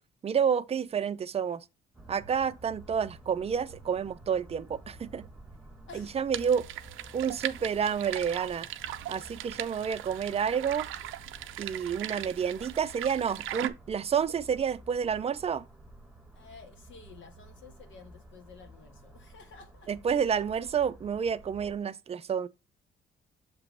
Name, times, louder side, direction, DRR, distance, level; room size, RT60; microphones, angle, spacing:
voice 1, 0.2-1.7 2.1-5.3 5.9-6.7 7.1-8.7 9.1-10.9 11.6-15.6 19.9-22.5, right 7 dB, 30° right, 0.5 m, -29 dB
sound 1, 1.9-21.8, right 1 dB, ahead, 1.3 m, -51 dB
voice 2, 5.9-6.2 16.3-19.9, left 5 dB, 70° left, 1.6 m, -52 dB
sound 2, 6.3-13.7, right 13 dB, 90° right, 0.6 m, -39 dB
6.9 x 2.9 x 5.2 m
cardioid pair, 90°, 20 cm